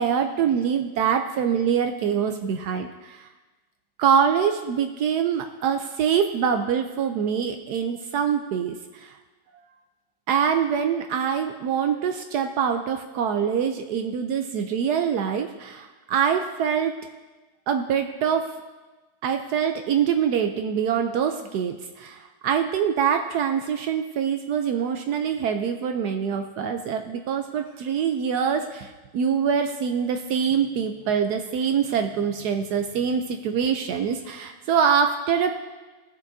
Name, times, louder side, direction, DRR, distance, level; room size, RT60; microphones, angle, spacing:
voice 1, 0.0-3.2 4.0-9.1 10.3-16.9 17.7-18.6 19.2-35.5, right 7 dB, 80° right, 6 dB, 0.9 m, -24 dB
20.0 x 7.0 x 2.6 m, 1.2 s
omnidirectional pair, 2.2 m